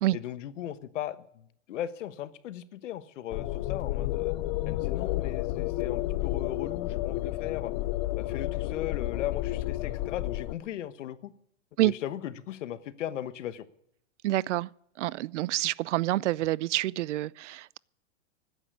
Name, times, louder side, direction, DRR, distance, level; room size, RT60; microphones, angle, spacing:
voice 1, 0.1-4.3 4.6-7.7 8.2-11.3 11.8-13.7, left 11 dB, 75° left, 1.2 m, -37 dB
sound 1, 3.3-10.5, left 16 dB, 40° left, 0.6 m, -31 dB
voice 2, 14.2-14.7 15.0-17.8, right 16 dB, 70° right, 0.5 m, -27 dB
15.0 x 9.8 x 8.3 m
hypercardioid pair, 140°, 37 cm